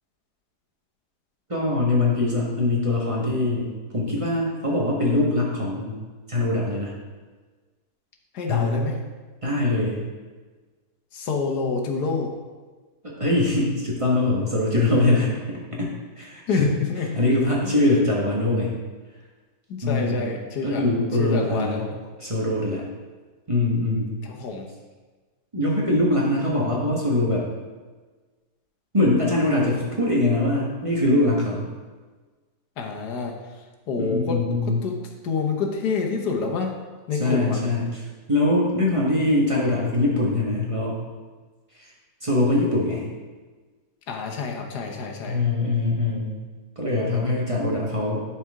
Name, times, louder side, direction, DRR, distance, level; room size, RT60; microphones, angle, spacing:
voice 1, 1.5-6.0 6.3-6.9 8.5-8.8 9.4-10.0 13.0-15.9 16.2-16.7 17.1-18.7 19.8-20.3 20.6-21.9 22.2-22.9 23.5-24.1 25.5-27.4 28.9-31.6 34.0-34.8 37.1-41.0 41.8-41.9 42.2-43.0 45.2-46.3 46.8-48.2, left 2 dB, 20° right, -4 dB, 1.2 m, -23 dB
voice 2, 8.3-8.9 11.1-12.3 16.5-17.1 19.7-20.8 21.2-21.9 24.3-24.7 32.8-33.3 33.9-34.4 34.8-35.0 35.2-36.7 37.1-37.6 44.1-45.4, left 4 dB, 90° left, 2 dB, 1.5 m, -27 dB
11.0 x 4.6 x 3.6 m, 1.3 s
omnidirectional pair, 1.7 m